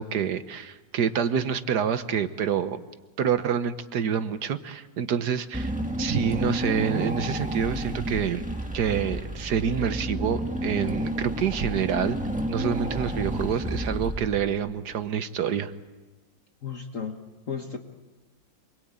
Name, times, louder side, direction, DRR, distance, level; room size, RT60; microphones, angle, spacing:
voice 1, 0.0-2.8 3.2-8.4 8.7-12.2 12.5-15.7, right 8 dB, 65° right, 11 dB, 1.5 m, -27 dB
Car / Engine, 5.5-14.7, right 1 dB, 5° right, 1.6 m, -30 dB
voice 2, 16.6-17.8, left 6 dB, 45° left, 5 dB, 1.5 m, -34 dB
26.5 x 22.0 x 8.8 m, 1.2 s
omnidirectional pair, 2.0 m